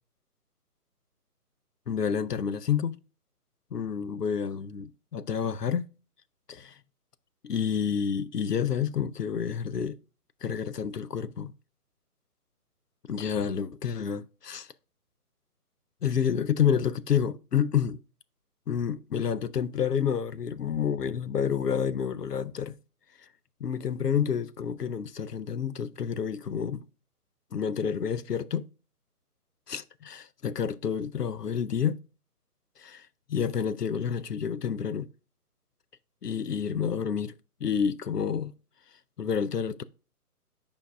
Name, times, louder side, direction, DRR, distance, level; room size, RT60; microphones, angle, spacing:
voice 1, 1.9-3.0 3.7-5.9 6.5-6.7 7.4-10.0 10.4-11.5 13.1-14.7 16.0-18.0 18.7-22.8 23.6-26.8 27.5-28.7 29.7-32.0 32.8-35.1 36.2-37.3 37.6-38.5 39.2-39.8, left 7 dB, 85° left, 0.7 m, -29 dB
9.1 x 5.2 x 2.2 m
figure-of-eight pair, 140°, 46 cm